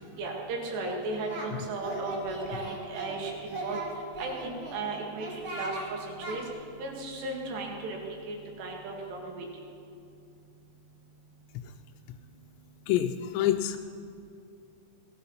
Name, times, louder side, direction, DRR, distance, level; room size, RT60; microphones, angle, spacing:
voice 1, 0.2-3.8 4.2-6.4 6.8-8.0 8.3-9.5, right 3 dB, 75° right, 0 dB, 4.1 m, -35 dB
Singing, 0.8-1.5 1.8-3.2 3.5-4.8 5.2-5.9 6.2-6.4, right 2 dB, 40° right, 2.0 m, -38 dB
voice 2, 12.9-13.8, left 11 dB, 90° left, 6 dB, 2.8 m, -27 dB
17.5 x 11.5 x 5.6 m, 2.6 s
omnidirectional pair, 4.9 m